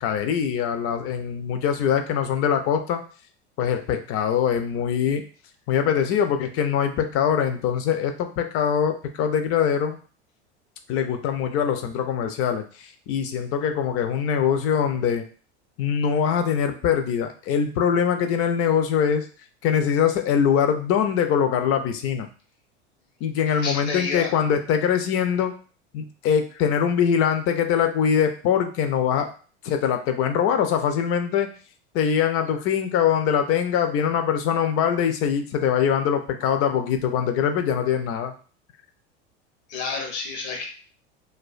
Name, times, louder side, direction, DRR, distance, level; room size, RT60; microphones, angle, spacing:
voice 1, 0.0-3.0 3.6-5.2 5.7-10.0 10.9-15.2 15.8-19.3 19.6-22.3 23.2-25.5 25.9-29.3 29.6-31.5 31.9-38.3, left 8 dB, 45° left, 7 dB, 0.4 m, -23 dB
voice 2, 23.5-24.3 39.7-40.7, left 4 dB, 75° left, 2 dB, 0.8 m, -30 dB
2.4 x 2.2 x 2.4 m, 0.39 s
hypercardioid pair, 90°, 34 cm